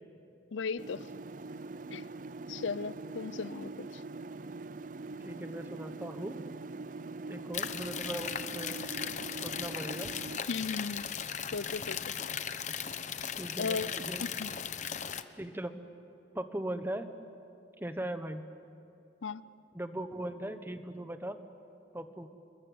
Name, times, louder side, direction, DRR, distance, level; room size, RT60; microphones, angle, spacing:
voice 1, 0.5-1.1 1.9-2.1 2.5-4.0 10.5-11.1 11.5-12.1 13.6-13.9 14.2-14.5 19.2-19.4, left 5 dB, 90° left, 17 dB, 0.6 m, -36 dB
sound 1, 0.8-10.4, right 3 dB, 45° right, 0.5 m, -43 dB
voice 2, 5.2-6.4 7.3-8.8 9.4-10.1 13.3-14.2 15.4-15.7 16.3-17.1 17.8-18.4 19.7-21.4 21.9-22.3, right 1 dB, 10° right, 8 dB, 1.2 m, -39 dB
sound 2, 7.5-15.2, left 7 dB, 40° left, 0.9 m, -37 dB
28.0 x 22.0 x 9.3 m, 2.8 s
head